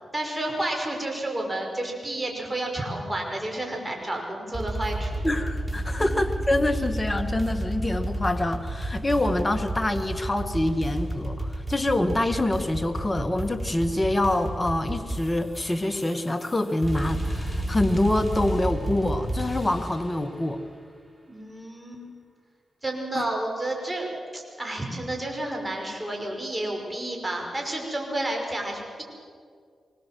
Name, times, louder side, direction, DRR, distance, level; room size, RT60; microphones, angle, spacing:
voice 1, 0.1-5.1 6.0-6.1 21.3-22.0 22.8-24.1 24.3-29.0, right 1 dB, 15° right, 1 dB, 5.9 m, -31 dB
sound 1, 4.5-20.1, right 1 dB, ahead, 6.9 m, -31 dB
voice 2, 5.2-20.6 23.1-23.3, left 1 dB, 20° left, 8 dB, 1.6 m, -26 dB
24.5 x 21.5 x 7.8 m, 2.1 s
cardioid pair, 50°, 0 cm